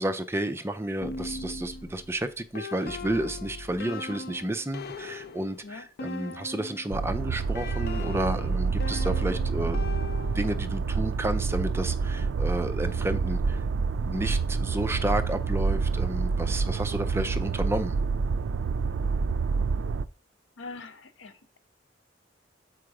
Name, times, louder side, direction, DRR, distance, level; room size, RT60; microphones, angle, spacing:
voice 1, 0.0-13.6 14.0-18.0, right 1 dB, 15° right, 0.5 m, -31 dB
sound 1, 1.0-7.0 7.5-10.8, left 3 dB, 55° left, 0.6 m, -39 dB
sound 2, 6.9-20.1, right 4 dB, 80° right, 0.4 m, -28 dB
voice 2, 20.6-21.6, left 3 dB, 85° left, 0.8 m, -43 dB
6.3 x 4.6 x 4.8 m
head